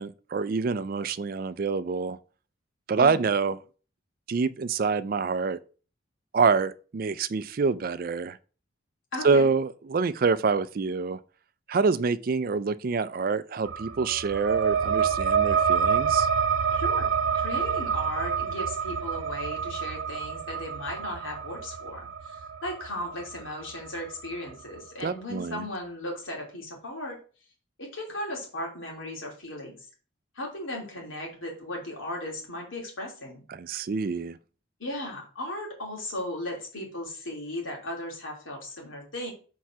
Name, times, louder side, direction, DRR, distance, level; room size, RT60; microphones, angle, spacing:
voice 1, 0.0-2.2 2.9-3.6 4.3-5.6 6.3-8.4 9.2-11.2 11.7-16.3 25.0-25.6 33.5-34.4, right 4 dB, 45° right, 0.4 m, -26 dB
voice 2, 9.1-9.5 16.7-27.2 27.8-29.8 30.3-33.4 34.8-39.3, left 1 dB, 85° left, 2.9 m, -36 dB
sound 1, 13.6-24.8, right 7 dB, 85° right, 0.6 m, -28 dB
4.6 x 4.5 x 5.9 m
head